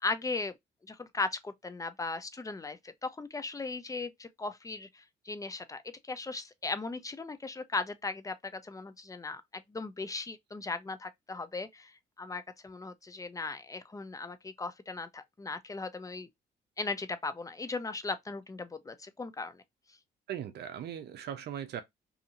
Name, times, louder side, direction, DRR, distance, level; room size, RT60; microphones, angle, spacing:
voice 1, 0.0-0.5 0.9-5.8 6.1-16.3 16.8-19.6, left 3 dB, 20° left, 0.5 m, -37 dB
voice 2, 20.3-21.8, right 9 dB, 65° right, 0.5 m, -39 dB
2.7 x 2.6 x 2.5 m
supercardioid pair, 70°, 19 cm